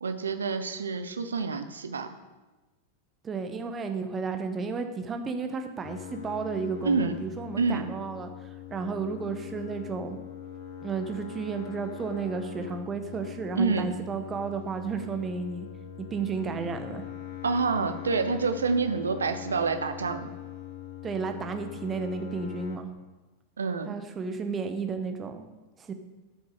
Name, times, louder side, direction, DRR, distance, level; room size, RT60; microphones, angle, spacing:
voice 1, 0.0-2.1 6.8-7.1 7.6-7.9 13.6-13.9 17.4-20.3 23.6-24.0, right 4 dB, 70° right, 9 dB, 0.9 m, -27 dB
voice 2, 3.2-10.2 10.8-15.7 16.0-17.1 21.0-22.9 23.9-25.5 25.8-25.9, right 5 dB, 20° right, 7 dB, 1.2 m, -33 dB
sound 1, 5.8-22.8, left 10 dB, 55° left, 1.1 m, -42 dB
13.0 x 6.9 x 4.9 m, 1.2 s
figure-of-eight pair, 90°, 0 cm